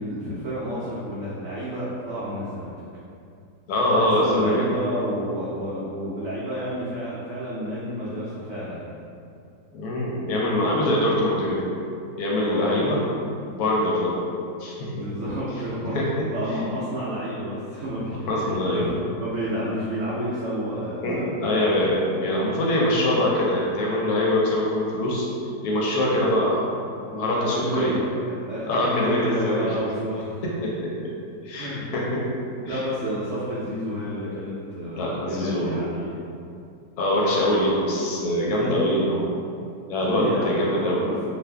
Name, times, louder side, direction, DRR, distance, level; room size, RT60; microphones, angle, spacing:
voice 1, 0.0-2.8 3.9-9.0 12.4-12.8 14.9-16.0 16.3-21.5 27.2-28.0 28.5-30.4 31.5-31.9 32.7-36.3 40.0-40.5 41.0-41.2, equal, 80° right, -8 dB, 0.6 m, -30 dB
voice 2, 3.7-4.6 9.7-11.6 12.2-13.0 13.5-14.2 14.6-14.9 15.9-16.2 18.3-18.9 21.0-26.6 27.1-28.0 28.7-29.7 30.4-30.7 31.4-32.2 32.7-32.9 34.9-35.9 37.0-39.4 39.9-41.1, left 1 dB, 70° left, -4 dB, 1.0 m, -23 dB
2.5 x 2.4 x 3.3 m, 2.5 s
omnidirectional pair, 1.8 m